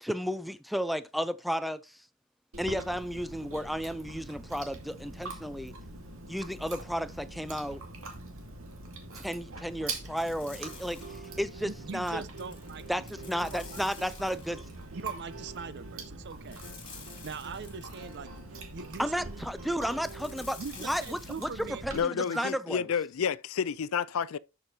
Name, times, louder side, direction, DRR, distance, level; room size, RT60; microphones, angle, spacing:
voice 1, 0.0-2.0 2.6-5.7 6.3-7.8 9.1-11.0 11.4-12.2 12.9-14.7 19.0-22.9, equal, ahead, 0.4 m, -33 dB
Chewing mastication, 2.5-22.0, right 2 dB, 70° right, 2.2 m, -44 dB
sound 1, 10.2-11.5 12.2-14.8 16.5-18.2 20.0-21.7, left 6 dB, 25° left, 2.8 m, -50 dB
sound 2, 10.3-20.7, right 5 dB, 85° right, 1.9 m, -51 dB
voice 2, 11.6-12.8 13.4-13.9 14.2-14.4 14.9-16.7 17.2-18.4 18.7-19.4 20.6-22.5, right 5 dB, 55° right, 0.6 m, -42 dB
voice 3, 21.9-24.4, left 7 dB, 70° left, 0.4 m, -30 dB
12.0 x 6.1 x 2.8 m
head